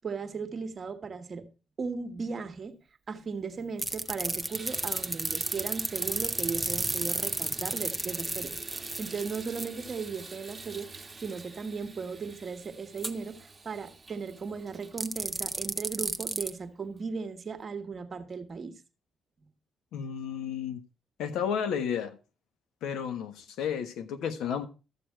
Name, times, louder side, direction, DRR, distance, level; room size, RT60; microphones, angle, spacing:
voice 1, 0.0-1.5 1.8-18.8 19.4-19.5, right 5 dB, 40° right, 1.4 m, -37 dB
Water tap faucet / Bathtub (filling or washing), 3.3-3.4 3.9-16.3 17.0-17.1 17.6-17.7, right 3 dB, 20° right, 1.5 m, -46 dB
sound 1, 3.8-9.7 13.0-13.1 15.0-16.5, right 1 dB, 5° right, 0.9 m, -32 dB
voice 2, 19.9-20.8 21.2-22.2 22.8-24.7, left 8 dB, 85° left, 1.3 m, -32 dB
13.0 x 6.9 x 4.5 m
cardioid pair, 90°, 0 cm